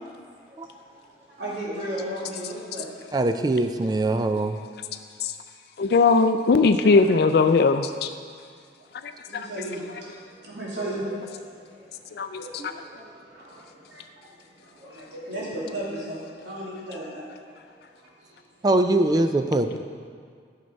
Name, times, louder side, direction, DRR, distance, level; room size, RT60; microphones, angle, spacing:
voice 1, 0.0-2.9 4.9-5.0 6.8-7.1 9.2-18.7, right 1 dB, 85° right, -7 dB, 2.6 m, -36 dB
voice 2, 3.1-4.6 12.6-12.7 18.6-19.8, right 2 dB, 20° right, 8 dB, 0.3 m, -22 dB
voice 3, 5.8-8.1 9.0-9.5 12.2-12.7, left 4 dB, 60° left, 8 dB, 0.4 m, -20 dB
11.0 x 6.6 x 5.2 m, 2.1 s
head